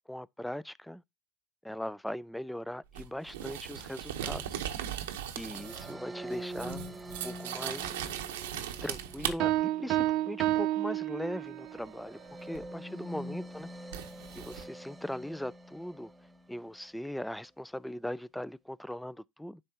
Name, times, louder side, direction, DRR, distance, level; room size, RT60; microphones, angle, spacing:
voice 1, 0.1-1.0 1.6-4.6 5.4-8.0 8.8-13.7 14.3-16.1 16.5-19.6, equal, 5° left, 0.3 m, -39 dB
sound 1, 2.9-6.0 6.3-9.3 12.5-12.7 13.9-14.6, right 10 dB, 85° right, 0.9 m, -38 dB
sound 2, 5.4-16.8, right 1 dB, 15° right, 1.0 m, -46 dB
sound 3, 9.4-11.8, right 15 dB, 60° right, 0.4 m, -29 dB
10.5 x 3.5 x 2.8 m
hypercardioid pair, 80°, 0 cm